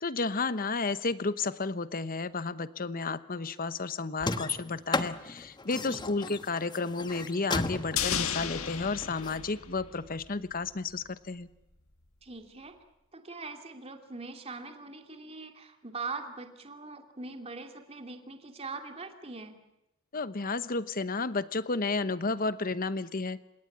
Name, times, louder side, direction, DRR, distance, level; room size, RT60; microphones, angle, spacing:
voice 1, 0.0-11.5 20.1-23.4, left 3 dB, 40° left, 14 dB, 1.0 m, -32 dB
sound 1, 4.2-9.4, left 3 dB, 20° left, 1.2 m, -34 dB
sound 2, 8.0-10.3 10.6-10.7, left 8 dB, 70° left, 1.8 m, -34 dB
voice 2, 12.2-12.8 13.1-19.6, right 3 dB, 30° right, 5 dB, 2.7 m, -42 dB
29.0 x 17.5 x 8.8 m, 0.89 s
head